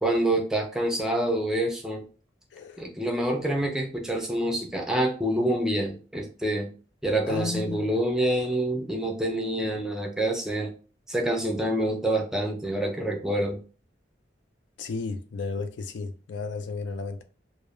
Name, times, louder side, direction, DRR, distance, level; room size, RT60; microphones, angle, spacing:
voice 1, 0.0-2.0 2.8-6.7 7.0-10.7 11.1-13.6, right 1 dB, 5° right, 0.4 m, -27 dB
voice 2, 7.3-7.9 14.8-17.2, left 4 dB, 90° left, 0.4 m, -33 dB
2.2 x 2.0 x 3.0 m
head